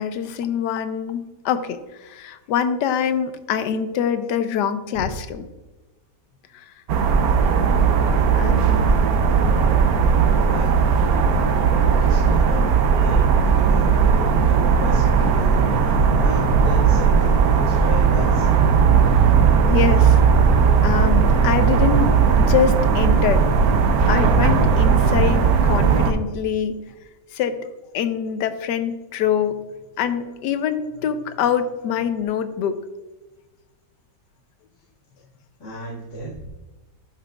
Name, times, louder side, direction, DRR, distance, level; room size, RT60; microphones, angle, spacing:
voice 1, 0.0-5.5 6.5-6.6 8.3-9.0 19.7-20.2 20.8-23.4 24.1-26.8 27.3-27.6 27.9-29.6 30.0-32.8, left 8 dB, 90° left, 10 dB, 1.2 m, -24 dB
sound 1, 6.9-26.1, right 6 dB, 70° right, 1.1 m, -17 dB
voice 2, 10.3-10.8 11.9-18.5 35.6-36.5, equal, 65° left, -9 dB, 2.3 m, -36 dB
11.5 x 5.8 x 2.3 m, 1.2 s
omnidirectional pair, 1.8 m